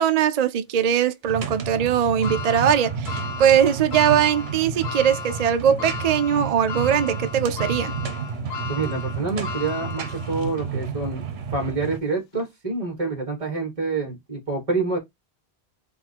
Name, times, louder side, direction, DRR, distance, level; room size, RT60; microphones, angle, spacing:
voice 1, 0.0-7.9, right 9 dB, 55° right, 0.5 m, -21 dB
sound 1, 1.3-12.0, right 5 dB, 75° right, 1.0 m, -31 dB
sound 2, 2.2-10.6 11.1-11.2 12.3-12.4, left 5 dB, 75° left, 1.0 m, -35 dB
voice 2, 8.7-15.0, right 3 dB, 30° right, 1.6 m, -27 dB
4.0 x 2.5 x 4.3 m
omnidirectional pair, 1.1 m